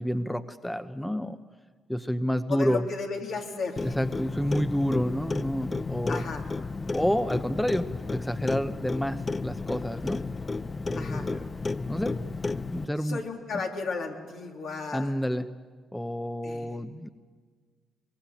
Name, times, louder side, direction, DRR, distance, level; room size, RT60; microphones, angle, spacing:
voice 1, 0.0-1.4 1.9-2.8 3.8-6.2 6.9-10.2 10.8-11.4 11.9-12.1 12.5-13.2 14.9-15.5 15.9-17.1, equal, 5° left, 10 dB, 1.0 m, -29 dB
voice 2, 2.5-3.9 6.1-6.5 10.9-11.3 13.0-15.1 16.4-16.8, left 4 dB, 70° left, 1 dB, 3.4 m, -34 dB
Clock, 3.8-12.8, left 3 dB, 35° left, 0.7 m, -33 dB
23.5 x 21.5 x 9.3 m, 1.5 s
supercardioid pair, 60°, 0 cm